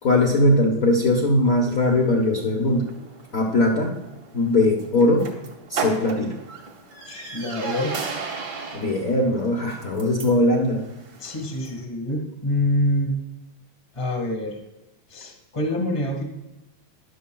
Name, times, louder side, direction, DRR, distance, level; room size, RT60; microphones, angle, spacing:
voice 1, 0.0-2.9 3.3-3.9 4.3-5.3 5.7-6.3 8.7-10.8, left 1 dB, 65° left, -3 dB, 0.8 m, -20 dB
sound 1, 1.7-11.8, right 5 dB, 50° right, 1.3 m, -36 dB
voice 2, 7.0-8.0 11.2-13.1 13.9-14.6 15.1-16.2, left 1 dB, 20° left, 1 dB, 0.8 m, -26 dB
13.5 x 10.5 x 2.3 m, 0.97 s
omnidirectional pair, 3.5 m